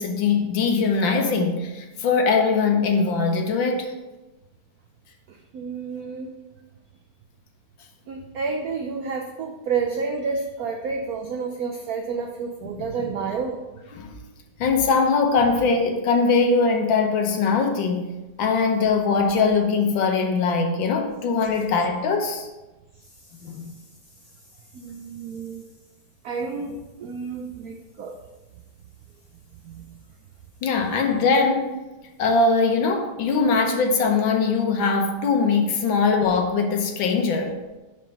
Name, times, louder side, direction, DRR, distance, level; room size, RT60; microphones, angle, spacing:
voice 1, 0.0-3.9 12.8-13.1 13.9-14.2 14.6-18.1 18.4-22.5 23.4-23.7 30.6-31.7 32.2-37.6, left 4 dB, 70° left, 4 dB, 1.6 m, -21 dB
voice 2, 5.3-6.3 8.1-13.6 24.7-25.7 26.2-28.2 29.6-29.9, right 5 dB, 85° right, 3 dB, 0.8 m, -30 dB
5.4 x 5.1 x 5.6 m, 1.1 s
omnidirectional pair, 2.3 m